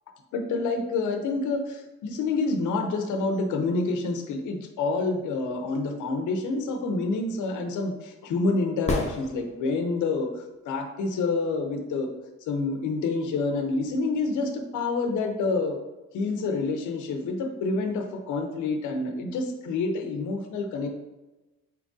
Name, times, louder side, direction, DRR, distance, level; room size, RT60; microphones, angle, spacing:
voice 1, 0.3-12.1 12.5-15.8 16.1-20.9, left 3 dB, 80° left, 4 dB, 0.7 m, -28 dB
sound 1, 8.8-10.0 13.9-14.0, left 2 dB, 20° left, 0.8 m, -31 dB
4.4 x 3.7 x 2.6 m, 1.1 s
cardioid pair, 90°, 30 cm